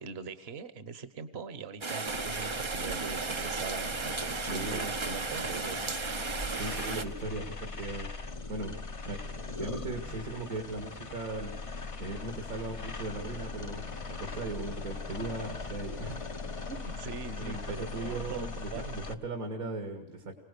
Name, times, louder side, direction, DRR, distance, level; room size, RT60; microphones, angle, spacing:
voice 1, 0.0-6.0 16.7-19.0, right 5 dB, 45° right, 12 dB, 1.4 m, -42 dB
Rain, 1.8-7.0, right 4 dB, 30° right, 0.6 m, -34 dB
sound 1, 2.1-19.1, left 3 dB, 30° left, 0.7 m, -40 dB
voice 2, 4.5-4.8 6.6-8.1 8.5-8.8 9.1-11.6 12.0-16.3 17.4-20.4, right 2 dB, 75° right, 4 dB, 2.4 m, -38 dB
sound 2, 11.7-18.7, left 7 dB, 80° left, 1.6 m, -49 dB
25.0 x 18.5 x 6.7 m, 0.82 s
omnidirectional pair, 1.5 m